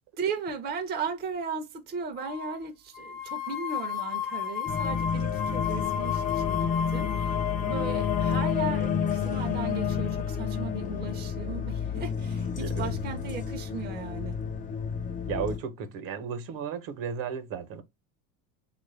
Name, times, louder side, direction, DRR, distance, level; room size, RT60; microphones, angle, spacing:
voice 1, 0.2-7.4 7.6-14.4, right 5 dB, 25° right, 0.6 m, -36 dB
sound 1, 2.2-2.6 2.9-8.5, left 7 dB, 55° left, 0.8 m, -34 dB
sound 2, 4.7-15.6, left 7 dB, 20° left, 0.4 m, -30 dB
voice 2, 12.6-12.9 15.3-17.8, right 6 dB, 55° right, 0.9 m, -34 dB
3.2 x 2.5 x 3.2 m
supercardioid pair, 100°, 41 cm